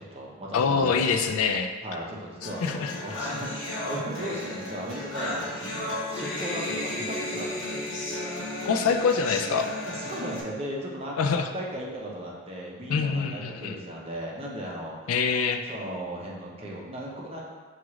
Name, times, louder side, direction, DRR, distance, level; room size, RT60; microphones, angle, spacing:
voice 1, 0.0-1.1 1.8-7.9 9.9-15.1 15.7-17.4, right 1 dB, 25° right, -3 dB, 0.6 m, -37 dB
voice 2, 0.5-1.7 2.6-3.0 8.6-9.7 11.2-11.5 12.9-13.8 15.1-15.6, left 5 dB, 80° left, 6 dB, 0.3 m, -25 dB
sound 1, 2.4-10.4, left 1 dB, 60° left, 0.9 m, -34 dB
5.9 x 2.4 x 3.0 m, 1.4 s
head